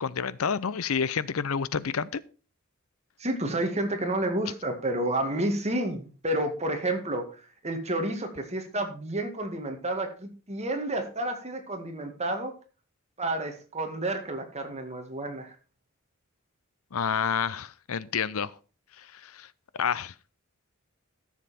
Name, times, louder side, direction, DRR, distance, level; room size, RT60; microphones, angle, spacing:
voice 1, 0.0-2.2 16.9-18.5 19.0-19.5 19.7-20.1, left 6 dB, 80° left, 19 dB, 0.6 m, -29 dB
voice 2, 3.2-12.5 13.2-15.5, right 1 dB, 30° right, 5 dB, 1.9 m, -30 dB
13.5 x 7.3 x 4.3 m, 0.35 s
head